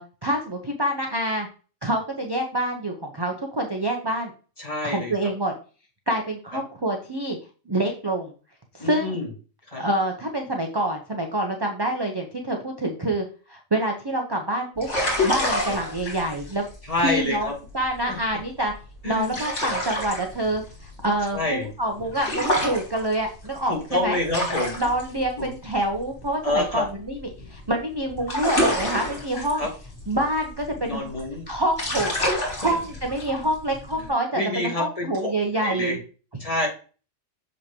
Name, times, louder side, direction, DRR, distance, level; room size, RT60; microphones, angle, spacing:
voice 1, 0.0-1.5 1.8-4.3 4.8-5.5 6.1-7.4 7.7-8.3 8.7-9.1 9.7-14.9 15.2-16.6 17.0-17.5 17.7-18.7 19.0-23.8 24.0-24.2 24.8-29.7 30.1-31.1 31.5-32.1 32.6-36.0, right 1 dB, 25° right, 2 dB, 0.7 m, -26 dB
voice 2, 4.6-5.1 6.5-6.6 8.8-9.3 9.7-9.8 15.7-15.8 16.9-17.5 18.1-18.2 19.0-19.4 21.3-21.7 23.7-24.8 25.4-25.5 26.4-26.9 29.5-29.7 30.8-31.5 32.6-32.8 34.0-34.1 34.3-35.3 35.6-36.0 36.4-36.7, left 2 dB, 25° left, -2 dB, 2.2 m, -27 dB
sound 1, 14.8-27.7 27.9-34.1, left 1 dB, 65° left, 2.4 m, -29 dB
6.6 x 5.3 x 2.9 m, 0.36 s
omnidirectional pair, 1.3 m